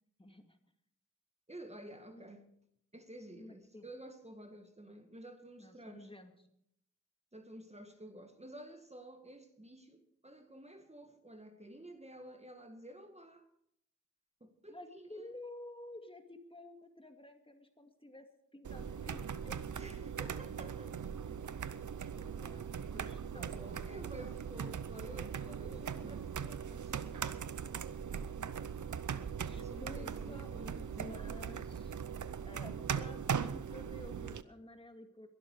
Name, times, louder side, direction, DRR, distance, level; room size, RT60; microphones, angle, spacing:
voice 1, 0.2-0.6 2.1-2.3 3.4-3.9 5.6-6.3 14.7-19.6 22.2-24.4 25.7-26.1 29.5-30.5 30.9-32.0 32.5-35.3, left 1 dB, 20° left, 2.2 m, -52 dB
voice 2, 1.5-2.5 2.9-6.1 7.3-13.5 14.4-15.3 19.8-20.9 23.3-27.0 29.6-31.1, right 1 dB, 20° right, 1.9 m, -51 dB
sound 1, 18.6-34.4, right 7 dB, 85° right, 0.7 m, -40 dB
21.5 x 12.0 x 4.8 m
cardioid pair, 45°, 29 cm